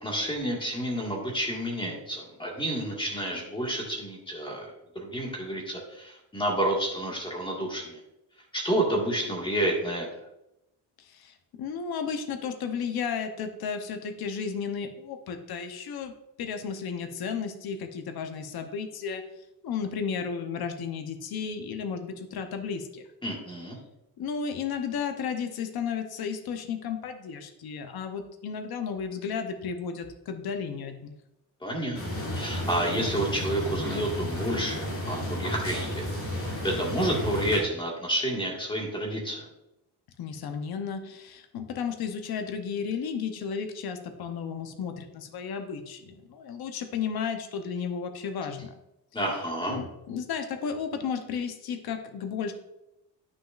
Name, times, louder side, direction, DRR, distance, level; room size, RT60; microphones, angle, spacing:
voice 1, 0.0-8.0 8.5-10.1 23.2-23.8 31.6-36.1 36.4-39.5 49.1-49.8, right 1 dB, 10° left, -2 dB, 1.8 m, -30 dB
voice 2, 11.0-16.1 16.4-19.2 19.6-23.1 24.2-31.1 40.2-48.8 49.7-52.5, left 6 dB, 55° left, 6 dB, 0.9 m, -33 dB
sound 1, 31.9-37.6, equal, 30° left, 2.2 m, -32 dB
9.6 x 6.2 x 2.5 m, 0.87 s
cardioid pair, 130°, 43 cm